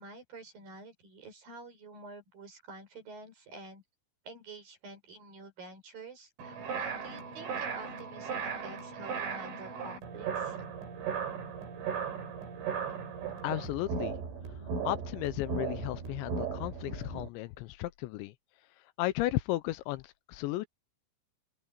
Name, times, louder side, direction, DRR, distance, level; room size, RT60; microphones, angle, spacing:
voice 1, 0.0-3.8 4.3-10.6, right 3 dB, 50° right, 7.5 m, -48 dB
sound 1, 6.4-17.3, right 6 dB, 90° right, 7.3 m, -37 dB
voice 2, 13.4-14.2 14.8-18.3 19.0-20.7, left 17 dB, 80° left, 2.9 m, -34 dB
open air
omnidirectional pair, 5.4 m